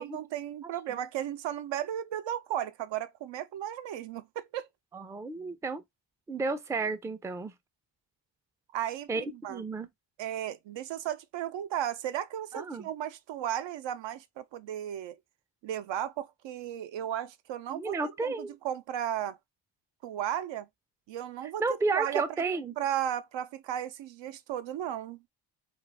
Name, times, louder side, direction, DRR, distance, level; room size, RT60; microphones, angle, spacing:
voice 1, 0.0-4.7 8.7-9.6 10.2-15.2 15.6-19.4 20.0-20.7 21.1-22.2 22.8-25.2, right 11 dB, 70° right, 0.5 m, -35 dB
voice 2, 4.9-5.8 6.3-7.5 9.1-9.9 12.5-12.9 17.7-18.5 21.6-22.7, right 3 dB, 5° right, 0.4 m, -32 dB
2.4 x 2.4 x 3.3 m
cardioid pair, 70°, 45 cm